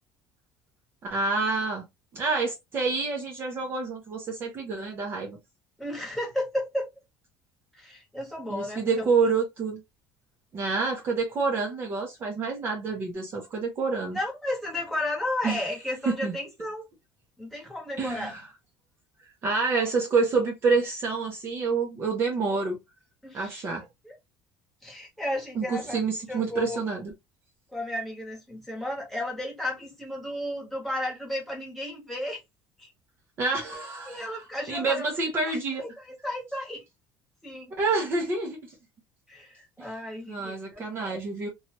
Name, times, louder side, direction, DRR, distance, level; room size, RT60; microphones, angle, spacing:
voice 1, 1.0-1.9 2.1-5.4 8.5-9.8 10.5-14.2 15.4-15.7 16.0-16.4 18.0-18.5 19.4-22.8 23.3-23.9 25.5-27.1 33.4-35.8 37.7-38.6 39.8-39.9 40.3-41.5, right 4 dB, 30° right, 0.7 m, -28 dB
voice 2, 5.8-6.9 7.7-9.1 14.1-16.9 17.4-18.3 23.2-23.6 24.0-24.1 24.8-26.0 26.3-26.8 27.7-32.4 32.8-32.9 34.1-35.1 35.5-35.6 36.1-36.8 37.4-37.7 39.3-41.2, left 1 dB, ahead, 1.2 m, -33 dB
2.8 x 2.3 x 2.9 m
cardioid pair, 165°, 7 cm